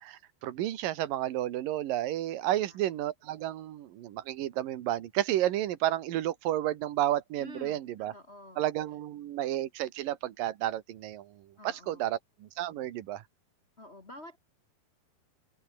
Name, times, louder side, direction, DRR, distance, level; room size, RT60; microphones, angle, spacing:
voice 1, 0.0-8.1 8.6-13.2, right 13 dB, 65° right, 2.9 m, -32 dB
voice 2, 7.4-8.6 11.6-12.2 13.8-14.4, left 2 dB, 75° left, 0.6 m, -49 dB
open air
omnidirectional pair, 4.8 m